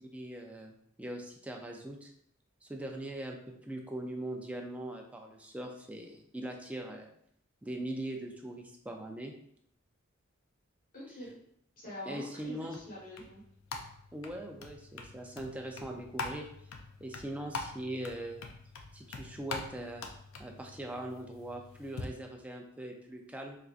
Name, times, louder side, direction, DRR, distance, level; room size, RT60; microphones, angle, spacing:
voice 1, 0.1-2.1 2.6-7.1 7.6-9.3 12.1-12.8 14.1-16.5 17.0-18.4 18.9-20.0 20.4-23.6, right 1 dB, 5° right, 2 dB, 0.4 m, -41 dB
voice 2, 10.9-11.4 11.8-13.4, left 1 dB, 45° left, -6 dB, 1.2 m, -45 dB
sound 1, 12.4-22.1, left 3 dB, 70° left, 0.4 m, -44 dB
4.3 x 2.5 x 2.4 m, 0.69 s
head